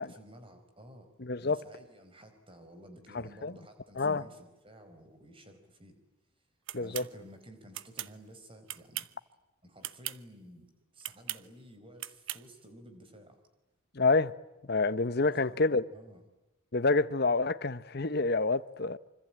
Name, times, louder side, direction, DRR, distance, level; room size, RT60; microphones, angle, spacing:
voice 1, 0.0-1.1 1.4-6.0 6.7-9.1 9.6-13.4 15.2-15.6 15.9-16.2, equal, 25° right, 4.7 m, -53 dB
voice 2, 1.2-1.6 3.4-3.5 4.0-4.2 6.7-7.0 13.9-14.3 14.7-15.9 16.7-19.0, left 3 dB, 45° left, 1.0 m, -27 dB
sound 1, 6.7-7.1 7.7-8.1 8.7-9.2 9.8-10.2 11.0-11.4 12.0-12.4, right 14 dB, 65° right, 1.0 m, -38 dB
26.5 x 25.5 x 8.8 m
head